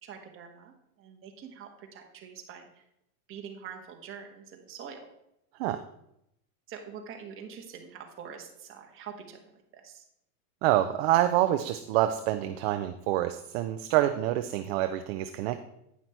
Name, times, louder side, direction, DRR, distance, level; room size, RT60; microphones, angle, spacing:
voice 1, 0.0-2.8 3.3-5.0 6.7-10.0, right 7 dB, 25° right, 3 dB, 1.4 m, -45 dB
voice 2, 10.6-15.7, right 13 dB, 45° right, 8 dB, 0.5 m, -27 dB
9.5 x 5.7 x 4.4 m, 0.80 s
supercardioid pair, 145°, 46 cm